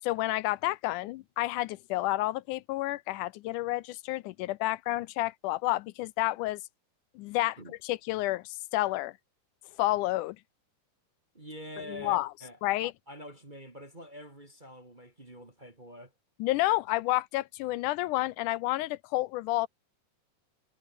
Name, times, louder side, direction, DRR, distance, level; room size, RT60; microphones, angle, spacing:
voice 1, 0.1-6.6 7.2-7.6 7.8-9.1 9.8-10.4 11.9-12.3 12.6-12.9 16.4-19.7, left 17 dB, 80° left, 2.1 m, -30 dB
voice 2, 11.3-16.1, equal, 20° right, 1.6 m, -46 dB
omnidirectional pair, 3.7 m